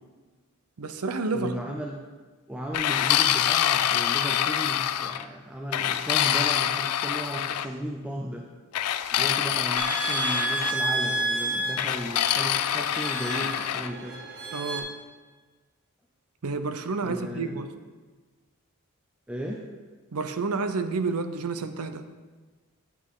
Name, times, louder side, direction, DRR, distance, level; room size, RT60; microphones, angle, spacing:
voice 1, 0.8-1.5 14.5-14.9 16.4-17.7 20.1-22.1, right 4 dB, 80° right, 9 dB, 0.6 m, -30 dB
voice 2, 1.3-2.0 2.5-8.5 9.1-14.2 17.0-17.7 19.3-19.7, equal, 5° right, -1 dB, 0.5 m, -35 dB
sound 1, 2.7-5.2 5.7-7.7 8.7-10.8 11.8-13.9, left 11 dB, 85° left, 0.4 m, -25 dB
sound 2, 9.8-14.8, right 2 dB, 45° right, 1.0 m, -31 dB
8.7 x 8.4 x 3.7 m, 1.4 s
head